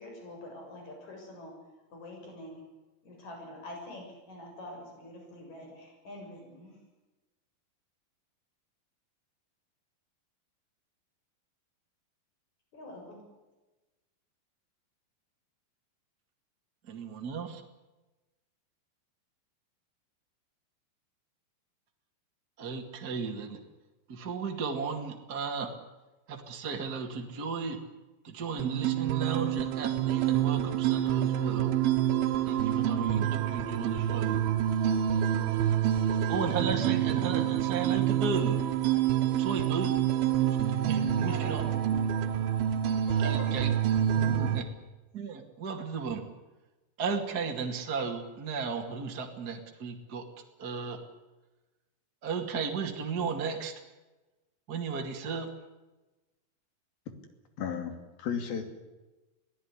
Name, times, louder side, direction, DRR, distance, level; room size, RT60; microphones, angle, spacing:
voice 1, 0.0-1.6 1.9-2.6 3.0-6.7 12.7-13.2 41.2-42.0 42.9-43.6 44.2-44.5, left 1 dB, 50° left, 1 dB, 8.3 m, -45 dB
voice 2, 16.9-17.6 22.6-23.6 24.1-25.7 26.3-27.8 28.2-31.7 32.5-34.4 36.3-38.6 39.4-40.0 40.6-41.6 43.1-43.7 44.1-44.7 45.1-46.2 47.0-50.2 50.6-51.0 52.2-53.7 54.7-55.5, right 5 dB, 30° right, 3 dB, 2.3 m, -34 dB
sound 1, 28.6-44.6, right 10 dB, 85° right, 3.3 m, -27 dB
voice 3, 57.6-58.6, left 7 dB, 75° left, 7 dB, 4.6 m, -34 dB
23.0 x 16.5 x 9.9 m, 1.1 s
omnidirectional pair, 4.3 m